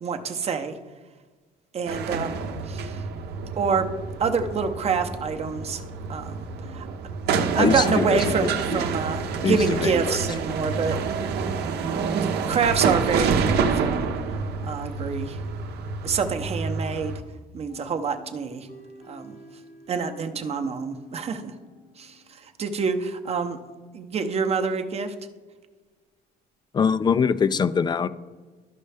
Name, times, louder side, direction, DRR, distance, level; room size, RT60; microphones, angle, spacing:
voice 1, 0.0-0.8 1.7-2.4 2.7-3.0 3.6-3.9 4.2-5.8 6.1-6.4 6.7-6.9 7.3-11.0 12.1-14.0 14.6-15.4 16.0-17.2 17.5-18.7 19.1-19.4 19.9-21.5 22.0-22.2 22.6-23.6 23.9-25.1, right 5 dB, 40° right, 7 dB, 0.7 m, -27 dB
sound 1, 1.9-17.2, right 5 dB, 75° right, 0.8 m, -28 dB
voice 2, 7.6-8.2 8.7-8.8 9.4-10.2 10.9-11.0 26.7-28.1, left 6 dB, 25° left, 15 dB, 0.4 m, -23 dB
sound 2, 17.7-22.4, left 2 dB, 80° left, 2.3 m, -47 dB
13.0 x 5.3 x 3.4 m, 1.4 s
cardioid pair, 110°, 17 cm